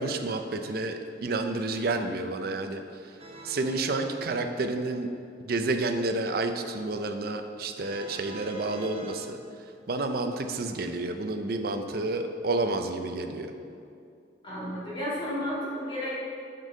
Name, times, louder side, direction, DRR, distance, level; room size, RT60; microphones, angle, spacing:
voice 1, 0.0-2.8 3.4-5.1 5.4-9.4 9.9-13.5, right 2 dB, 55° right, 6 dB, 0.5 m, -30 dB
sound 1, 3.2-5.2 7.7-9.1, right 2 dB, 35° right, 0.9 m, -46 dB
voice 2, 14.4-16.1, equal, 25° left, -8 dB, 1.8 m, -32 dB
6.4 x 5.3 x 5.3 m, 2.4 s
head